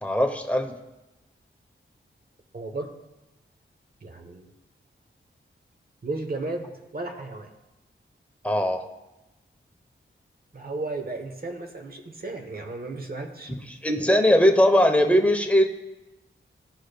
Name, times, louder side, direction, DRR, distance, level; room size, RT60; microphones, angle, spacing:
voice 1, 0.0-0.7 8.4-8.8 13.7-15.7, equal, 5° left, 3 dB, 0.8 m, -20 dB
voice 2, 2.5-2.9 4.0-4.5 6.0-7.5 10.5-13.5, right 2 dB, 45° right, 4 dB, 0.9 m, -34 dB
14.5 x 4.9 x 2.2 m, 1.0 s
wide cardioid pair, 70°, 21 cm